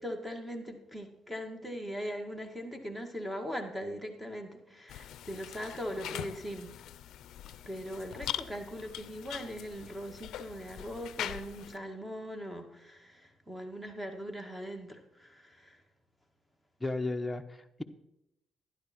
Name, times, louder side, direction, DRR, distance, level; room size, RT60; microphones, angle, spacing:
voice 1, 0.0-6.8 7.4-15.8, equal, 5° right, 5 dB, 2.0 m, -40 dB
sound 1, 4.9-11.8, left 12 dB, 80° left, 0.5 m, -42 dB
voice 2, 16.8-17.8, left 2 dB, 10° left, 5 dB, 0.9 m, -34 dB
12.0 x 11.0 x 4.5 m, 0.85 s
cardioid pair, 90°, 0 cm